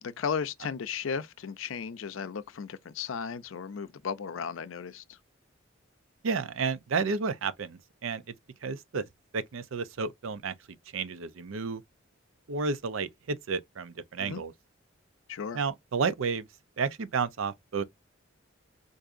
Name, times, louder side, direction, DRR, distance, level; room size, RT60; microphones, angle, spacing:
voice 1, 0.0-5.0 14.2-14.4 15.3-15.6, left 6 dB, 75° left, 0.5 m, -35 dB
voice 2, 6.2-8.2 8.6-9.0 9.3-10.5 10.9-11.8 12.5-14.5 15.5-16.5 16.8-17.8, right 5 dB, 80° right, 0.5 m, -31 dB
4.7 x 2.6 x 2.5 m
head